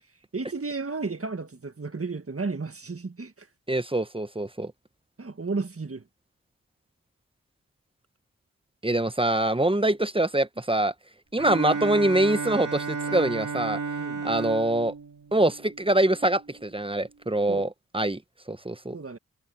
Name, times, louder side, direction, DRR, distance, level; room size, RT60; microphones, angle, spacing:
voice 1, 0.3-3.5 5.2-6.0 14.0-14.2 17.5-17.7 18.9-19.2, right 4 dB, 40° right, 1.7 m, -33 dB
voice 2, 3.7-4.7 8.8-10.9 11.3-13.8 14.2-14.9 15.3-18.2 18.5-18.9, right 1 dB, 15° right, 1.1 m, -24 dB
Bowed string instrument, 11.4-16.1, right 4 dB, 60° right, 3.0 m, -33 dB
cardioid pair, 40°, 35 cm